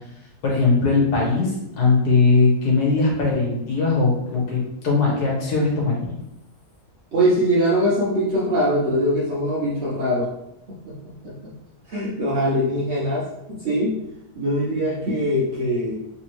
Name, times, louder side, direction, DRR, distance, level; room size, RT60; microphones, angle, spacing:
voice 1, 0.4-6.2, left 3 dB, 80° left, -2 dB, 1.6 m, -20 dB
voice 2, 7.1-10.3 10.7-10.9 11.2-11.5 11.9-14.0 14.4-16.0, equal, 55° right, -7 dB, 0.8 m, -22 dB
3.4 x 3.0 x 3.0 m, 0.83 s
omnidirectional pair, 1.7 m